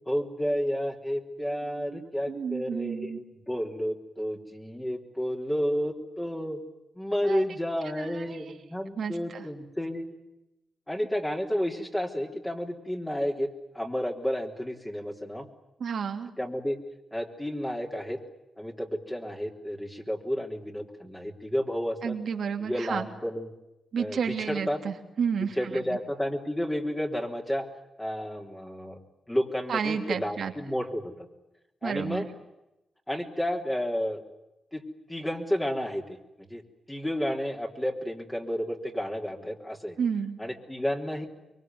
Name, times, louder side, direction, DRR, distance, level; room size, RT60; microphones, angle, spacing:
voice 1, 0.0-6.6 7.0-10.1 10.9-13.5 13.7-15.5 16.4-16.8 17.1-18.2 18.6-22.2 22.6-23.5 24.0-24.8 25.6-27.7 28.0-29.0 29.3-31.3 31.8-32.3 33.1-34.2 34.7-36.6 36.9-40.0 40.4-41.3, equal, 10° left, 0 dB, 3.6 m, -31 dB
voice 2, 1.7-3.2 7.2-7.4 8.0-8.5 9.0-9.5 15.8-16.3 22.0-23.1 23.9-26.0 29.7-30.5 31.8-32.3 40.0-40.4, right 6 dB, 70° right, 5 dB, 3.0 m, -31 dB
24.5 x 23.0 x 9.5 m, 0.92 s
cardioid pair, 85°, 0 cm